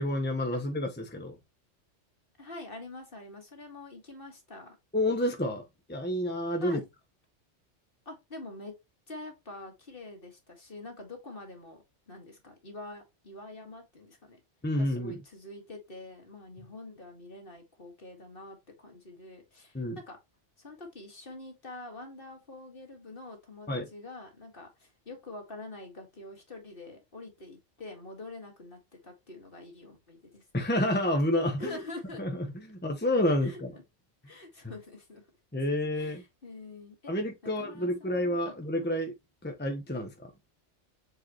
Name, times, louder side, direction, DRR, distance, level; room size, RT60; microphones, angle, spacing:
voice 1, 0.0-1.4 4.9-5.6 5.9-6.8 14.6-15.2 19.7-20.0 23.7-23.9 30.5-31.8 32.2-33.7 35.5-36.2 37.1-39.1 39.4-40.3, left 1 dB, 10° left, 1.0 m, -29 dB
voice 2, 2.4-4.8 6.6-6.8 8.1-8.7 9.1-14.4 14.8-20.2 20.6-30.4 31.6-32.2 33.4-33.6 34.2-35.2 35.9-37.1 37.4-38.5, left 2 dB, 50° left, 2.2 m, -46 dB
7.3 x 4.8 x 3.0 m
omnidirectional pair, 1.2 m